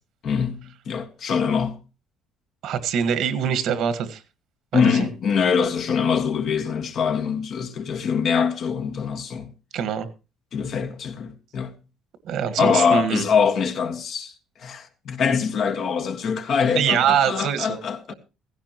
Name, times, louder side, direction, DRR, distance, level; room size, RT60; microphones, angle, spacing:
voice 1, 0.2-1.8 4.7-9.5 10.5-11.7 12.6-14.3 14.6-18.1, left 6 dB, 55° left, 1.6 m, -23 dB
voice 2, 2.6-4.2 4.7-5.1 9.7-10.1 12.2-13.2 16.7-17.8, right 8 dB, 70° right, 1.6 m, -23 dB
16.0 x 15.5 x 3.0 m
cardioid pair, 120°, 0 cm